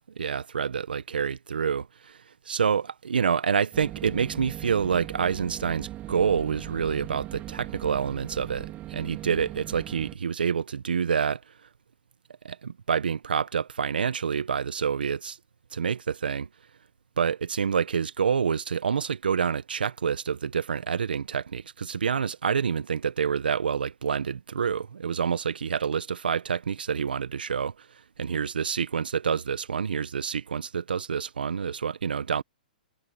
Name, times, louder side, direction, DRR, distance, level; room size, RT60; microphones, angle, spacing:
voice 1, 0.2-2.2 2.4-11.4 12.4-15.4 15.7-16.4 17.2-27.9 28.2-32.4, right 6 dB, 85° right, 1.4 m, -27 dB
sound 1, 3.7-10.1, right 14 dB, 30° right, 3.2 m, -39 dB
hypercardioid pair, 130°, 5 cm